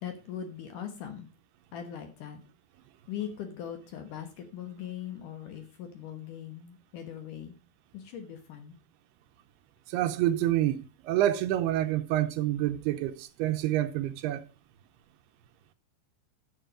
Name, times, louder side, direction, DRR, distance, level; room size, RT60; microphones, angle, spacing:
voice 1, 0.0-1.3 1.7-2.4 3.1-7.5 7.9-8.8, left 9 dB, 65° left, 2.3 m, -40 dB
voice 2, 9.9-14.4, right 13 dB, 80° right, 2.6 m, -28 dB
9.1 x 7.6 x 5.1 m
omnidirectional pair, 4.8 m